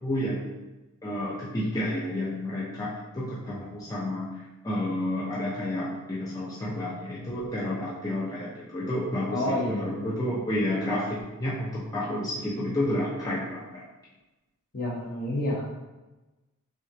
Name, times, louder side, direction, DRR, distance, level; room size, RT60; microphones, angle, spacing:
voice 1, 0.0-0.5 1.0-4.3 4.6-13.8, left 1 dB, 15° left, -7 dB, 0.6 m, -30 dB
voice 2, 9.3-10.1 14.7-15.6, left 1 dB, 45° left, -4 dB, 1.1 m, -29 dB
6.1 x 2.4 x 2.8 m, 1.1 s
head